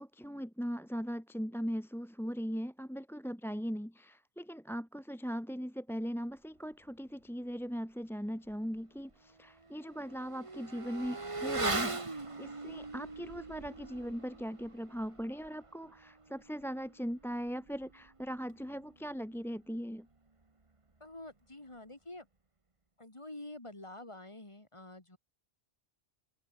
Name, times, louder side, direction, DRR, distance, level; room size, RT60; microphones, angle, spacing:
voice 1, 0.0-20.1, equal, ahead, 1.4 m, -39 dB
Motorcycle / Accelerating revving vroom, 8.5-8.6 9.0-19.0 19.2-19.4, right 3 dB, 30° right, 1.6 m, -41 dB
voice 2, 21.0-22.3 23.0-25.2, left 2 dB, 30° left, 2.4 m, -48 dB
omnidirectional pair, 1.1 m